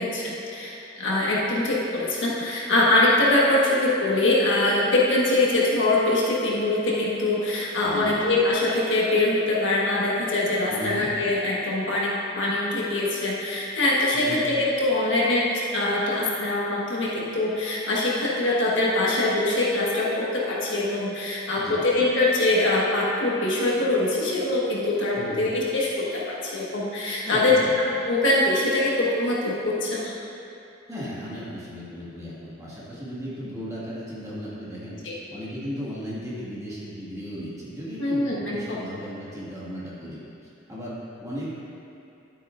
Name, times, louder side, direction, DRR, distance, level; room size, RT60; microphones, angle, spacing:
voice 1, 0.0-15.5 15.7-30.1 35.0-35.2 38.0-38.8, left 2 dB, 65° left, -5 dB, 1.5 m, -23 dB
voice 2, 7.8-8.2 10.7-11.1 14.1-14.4 21.6-21.8 25.1-25.4 27.2-27.7 30.9-35.0 35.3-40.2 40.7-41.5, equal, 15° right, -9 dB, 1.9 m, -36 dB
11.0 x 8.7 x 2.6 m, 2.8 s
head